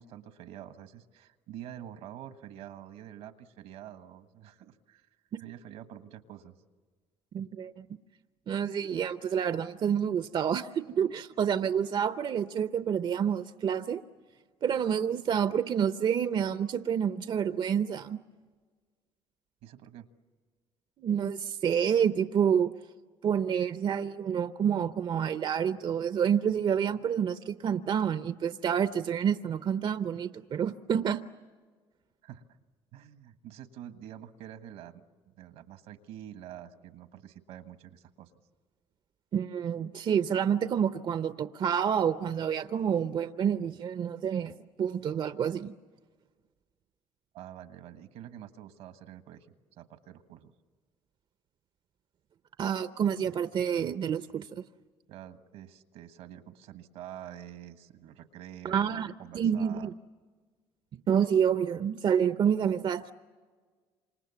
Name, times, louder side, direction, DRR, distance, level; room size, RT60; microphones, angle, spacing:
voice 1, 0.0-5.1 5.4-6.5 7.3-7.5 19.6-20.1 32.2-32.5 32.9-38.3 47.3-49.5 49.8-50.5 55.1-59.9, right 11 dB, 80° right, 10 dB, 1.4 m, -47 dB
voice 2, 7.3-7.9 8.5-14.0 14.6-18.2 21.0-22.7 23.2-31.2 39.3-45.8 52.6-54.6 58.6-59.9 61.1-63.1, right 8 dB, 50° right, 11 dB, 0.7 m, -28 dB
27.5 x 26.5 x 7.1 m, 1.5 s
supercardioid pair, 80°, 10 cm